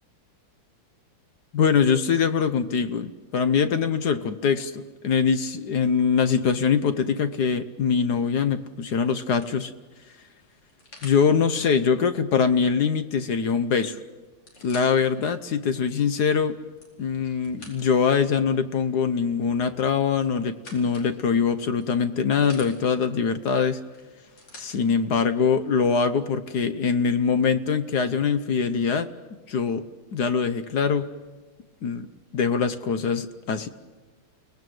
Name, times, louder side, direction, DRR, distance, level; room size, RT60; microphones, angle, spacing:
voice 1, 1.5-9.7 11.0-14.0 14.6-16.6 17.0-23.8 24.6-29.1 29.5-29.8 30.1-31.1 31.8-33.7, left 6 dB, 60° left, 11 dB, 1.3 m, -23 dB
sound 1, 9.4-11.2 13.3-13.4 13.6-13.7 14.2-15.1 15.7-15.8 16.5-18.1 19.8-21.1 21.8-22.7 23.9-24.8 25.7-25.8, left 2 dB, 90° left, 5.4 m, -48 dB
30.0 x 18.5 x 7.9 m, 1.3 s
omnidirectional pair, 2.4 m